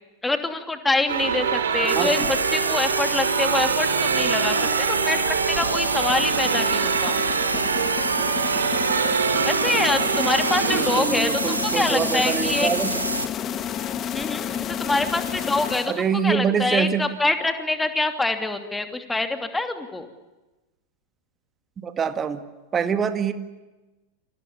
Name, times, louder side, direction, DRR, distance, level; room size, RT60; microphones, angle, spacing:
voice 1, 0.2-7.2 9.4-12.7 14.1-15.9 16.2-20.1, left 2 dB, 10° left, 7 dB, 2.9 m, -25 dB
sound 1, 1.1-11.0, right 6 dB, 65° right, 3.6 m, -25 dB
sound 2, 1.9-13.3, right 2 dB, 80° right, 1.7 m, -27 dB
voice 2, 2.0-2.3 4.5-4.8 10.7-13.0 15.9-17.0 21.8-22.4 22.7-23.3, right 7 dB, 20° right, 9 dB, 2.1 m, -25 dB
sound 3, 5.6-16.3, left 9 dB, 30° left, 1.7 m, -32 dB
30.0 x 26.0 x 7.1 m, 1.1 s
figure-of-eight pair, 90°, 0 cm